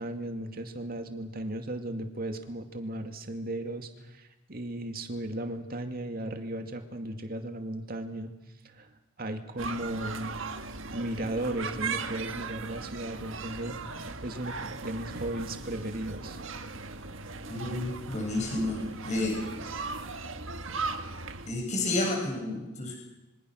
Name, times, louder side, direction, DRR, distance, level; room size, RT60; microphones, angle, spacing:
voice 1, 0.0-8.3 8.6-8.9 9.2-10.4 10.9-16.4, right 1 dB, 45° right, 6 dB, 2.3 m, -36 dB
sound 1, 9.6-21.5, right 4 dB, 70° right, 1.6 m, -38 dB
voice 2, 17.5-19.4 21.5-23.0, left 2 dB, 35° left, 0 dB, 7.0 m, -30 dB
26.5 x 24.5 x 6.5 m, 1.0 s
head